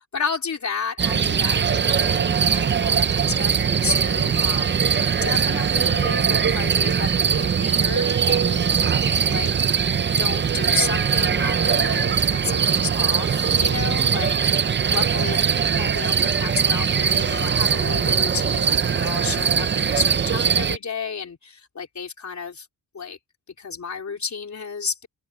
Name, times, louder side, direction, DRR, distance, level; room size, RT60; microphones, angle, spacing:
voice 1, 0.1-4.8 5.2-8.7 9.2-9.5 10.2-15.4 15.8-22.7 22.9-23.2 23.6-25.1, left 5 dB, 45° left, 3.9 m, -32 dB
sound 1, 1.0-20.8, right 7 dB, 30° right, 0.5 m, -21 dB
open air
wide cardioid pair, 140°, 40 cm